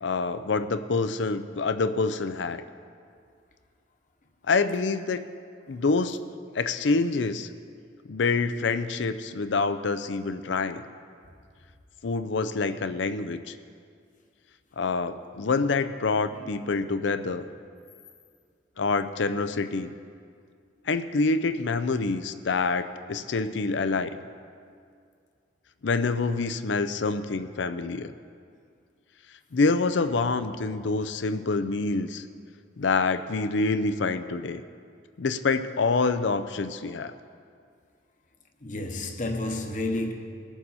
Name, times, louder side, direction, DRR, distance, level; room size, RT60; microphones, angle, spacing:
voice 1, 0.0-2.6 4.5-5.2 5.7-6.2 6.5-7.5 8.1-10.8 12.0-13.5 14.8-17.5 18.8-19.9 20.9-24.1 25.8-28.1 29.5-32.2 32.8-34.6 35.2-37.1, left 4 dB, 75° left, 0.5 m, -26 dB
voice 2, 16.3-16.8 38.6-40.1, left 2 dB, 40° left, 1.0 m, -31 dB
20.0 x 7.0 x 4.2 m
head